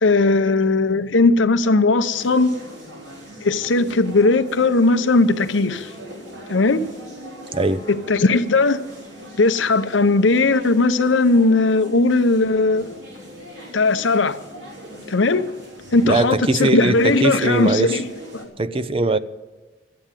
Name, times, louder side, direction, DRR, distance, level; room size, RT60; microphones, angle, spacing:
voice 1, 0.0-2.5 3.4-5.9 6.5-6.9 7.9-8.8 9.4-13.0 13.7-14.4 15.1-15.5 15.9-18.1 18.3-18.5, left 3 dB, 90° left, 0.8 m, -18 dB
sound 1, 2.1-18.5, equal, 70° right, 3.4 m, -40 dB
voice 2, 7.5-7.8 16.0-18.0 18.6-19.2, right 2 dB, 30° right, 0.5 m, -20 dB
13.0 x 8.8 x 8.9 m
head